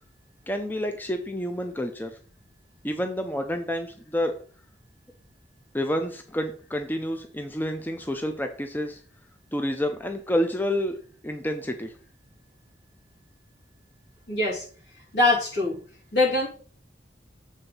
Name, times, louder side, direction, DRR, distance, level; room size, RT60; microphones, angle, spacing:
voice 1, 0.5-2.2 2.8-4.3 5.7-9.0 9.5-11.0 11.2-11.9, equal, 10° left, 5 dB, 0.5 m, -29 dB
voice 2, 14.3-14.6 15.1-15.8 16.1-16.5, left 2 dB, 70° left, -4 dB, 3.5 m, -22 dB
7.3 x 3.9 x 5.4 m, 0.43 s
head